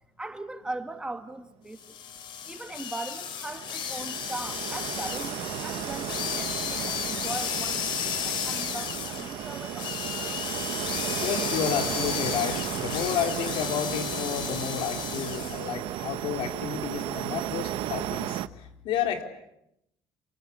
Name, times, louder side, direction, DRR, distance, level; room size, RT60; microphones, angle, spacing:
voice 1, 0.2-2.0 2.5-10.6, right 2 dB, 10° right, 1.7 m, -39 dB
sound 1, 1.8-15.7, left 8 dB, 60° left, 4.2 m, -34 dB
sound 2, 2.8-18.5, right 14 dB, 70° right, 1.1 m, -34 dB
voice 2, 11.2-19.2, left 9 dB, 75° left, 4.1 m, -31 dB
28.0 x 25.0 x 8.4 m
cardioid pair, 150°, 9 cm